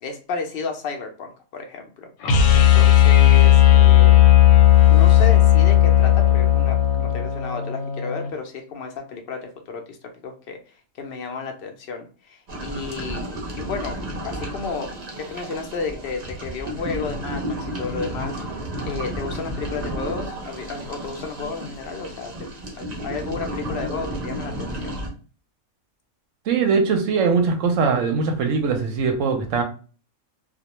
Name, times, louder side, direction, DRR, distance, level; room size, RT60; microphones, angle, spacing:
voice 1, 0.0-2.1 2.5-4.2 4.8-10.0 10.2-13.3 13.6-18.4 18.8-22.3 22.8-25.0, left 5 dB, 60° left, 0.6 m, -32 dB
sound 1, 2.2-8.3, left 12 dB, 85° left, 1.0 m, -14 dB
sound 2, 12.5-25.1, right 1 dB, 45° right, 0.5 m, -32 dB
voice 2, 26.5-29.6, right 5 dB, 70° right, 0.9 m, -21 dB
2.3 x 2.1 x 2.9 m
omnidirectional pair, 1.4 m